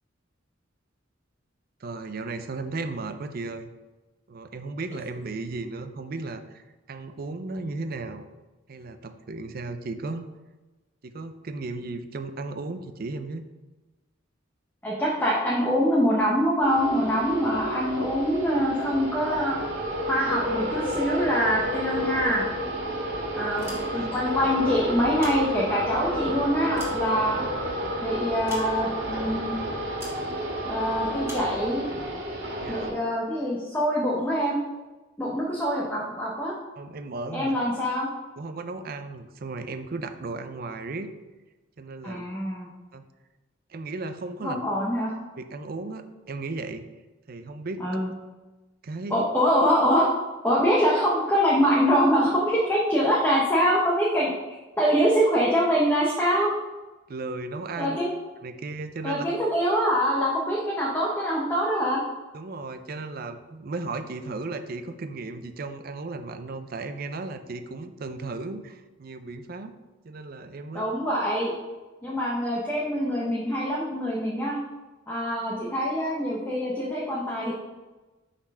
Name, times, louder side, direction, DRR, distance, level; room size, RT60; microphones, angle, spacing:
voice 1, 1.8-3.7 4.3-8.3 8.7-10.3 11.0-13.4 23.9-24.1 32.6-32.9 36.8-37.5 38.4-41.1 41.8-42.3 42.9-43.0 43.7-44.6 45.4-46.8 47.3-47.9 48.8-49.3 57.1-58.0 58.4-59.2 62.3-69.7 70.0-70.9, right 3 dB, 50° right, 9 dB, 0.5 m, -35 dB
voice 2, 14.8-19.6 20.1-22.4 23.3-27.4 28.0-29.6 30.6-31.8 32.7-34.6 35.2-36.5 37.3-38.1 42.0-42.7 44.4-45.1 47.8-48.1 49.1-50.1 50.4-56.5 57.8-58.1 59.0-62.0 70.7-71.5 72.0-74.6 75.1-77.5, equal, 10° left, -6 dB, 1.0 m, -24 dB
sound 1, 16.6-32.9, equal, 65° right, 1.8 m, -31 dB
sound 2, 23.5-24.3 25.0-26.0 26.4-27.7 28.5-29.1 30.0-30.3 31.2-31.6, right 1 dB, 15° right, 2.1 m, -43 dB
5.8 x 4.2 x 5.5 m, 1.2 s
head